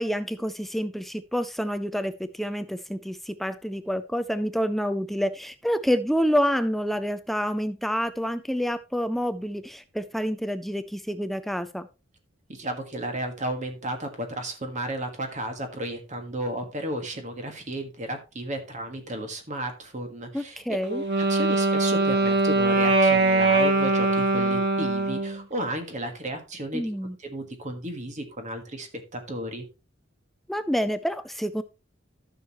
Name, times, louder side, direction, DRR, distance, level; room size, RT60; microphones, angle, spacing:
voice 1, 0.0-11.9 20.3-21.0 26.7-27.2 30.5-31.6, equal, ahead, 12 dB, 0.4 m, -28 dB
voice 2, 12.5-20.8 21.2-26.9 27.2-29.7, right 1 dB, 40° right, 5 dB, 1.6 m, -33 dB
Wind instrument woodwind instrument, 20.8-25.4, right 2 dB, 60° right, 1.5 m, -22 dB
13.5 x 6.3 x 3.0 m, 0.30 s
head